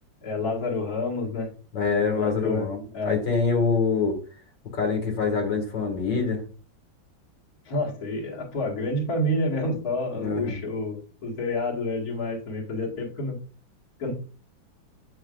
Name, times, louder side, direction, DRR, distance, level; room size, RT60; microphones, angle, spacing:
voice 1, 0.2-1.5 2.1-2.7 2.9-3.2 7.7-13.4 14.0-14.1, left 1 dB, 50° left, -4 dB, 2.4 m, -29 dB
voice 2, 1.7-4.2 4.7-6.4 10.2-10.5, left 5 dB, 70° left, 1 dB, 2.7 m, -25 dB
8.7 x 6.2 x 2.5 m, 0.36 s
omnidirectional pair, 2.1 m